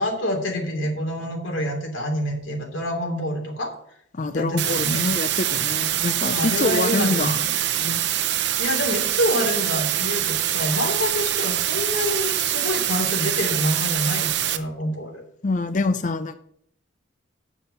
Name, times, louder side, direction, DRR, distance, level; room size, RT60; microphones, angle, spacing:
voice 1, 0.0-3.7 4.3-5.0 6.3-7.3 8.6-15.2, left 1 dB, 80° left, 1 dB, 2.9 m, -27 dB
voice 2, 4.1-8.0 15.4-16.3, left 3 dB, 40° left, 11 dB, 0.5 m, -26 dB
sound 1, 4.6-14.6, right 12 dB, 60° right, 0.7 m, -24 dB
7.4 x 7.1 x 6.8 m, 0.67 s
head